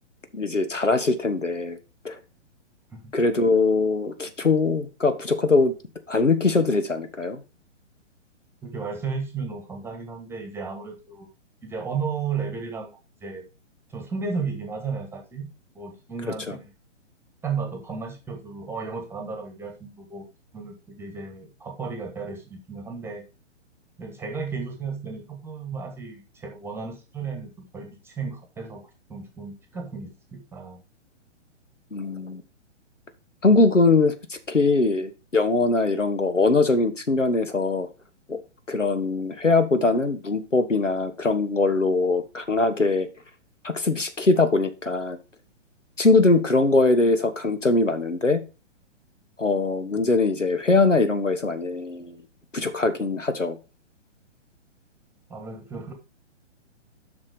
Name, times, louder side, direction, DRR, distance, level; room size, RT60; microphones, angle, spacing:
voice 1, 0.3-1.8 2.0-2.2 3.1-5.7 6.1-7.4 16.5-16.6 31.9-32.4 33.4-37.9 38.3-38.4 38.7-43.1 43.6-45.2 46.0-48.4 49.4-52.2 52.5-53.6, left 3 dB, 90° left, 10 dB, 1.4 m, -22 dB
voice 2, 8.6-11.3 11.6-12.9 13.2-13.5 13.9-15.5 15.7-16.6 17.4-20.3 20.5-23.2 24.0-28.8 29.1-30.8 55.3-55.9, right 5 dB, 5° right, 4 dB, 1.4 m, -34 dB
7.5 x 6.0 x 5.0 m, 0.30 s
figure-of-eight pair, 125°, 36 cm